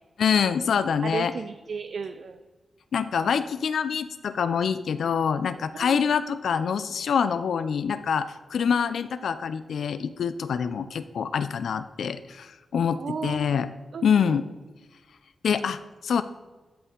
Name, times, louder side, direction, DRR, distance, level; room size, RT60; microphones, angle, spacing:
voice 1, 0.2-1.3 2.9-13.7 14.0-14.4 15.4-16.2, left 7 dB, 85° left, 12 dB, 0.3 m, -25 dB
voice 2, 1.0-2.4 5.7-6.2 13.0-13.6 13.9-14.5, right 5 dB, 75° right, 8 dB, 0.4 m, -35 dB
12.5 x 4.3 x 3.8 m, 1.2 s
cardioid pair, 65°, 0 cm